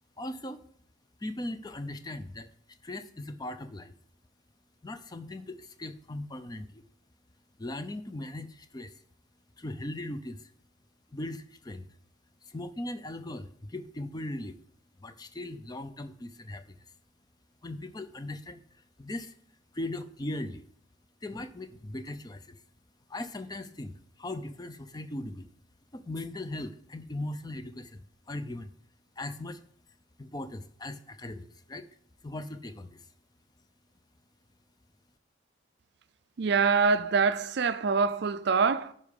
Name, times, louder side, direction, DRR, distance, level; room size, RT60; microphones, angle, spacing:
voice 1, 0.2-0.6 1.2-2.5 2.8-3.9 4.8-6.8 7.6-9.0 9.6-10.5 11.1-11.9 12.4-14.6 15.0-16.8 17.6-19.4 19.7-20.6 21.2-22.6 23.1-25.5 25.9-28.7 29.2-29.6 30.2-31.9 32.2-33.1, left 1 dB, 20° left, 0.5 m, -39 dB
voice 2, 36.4-38.9, right 5 dB, 55° right, 0.4 m, -25 dB
9.7 x 5.5 x 5.2 m
head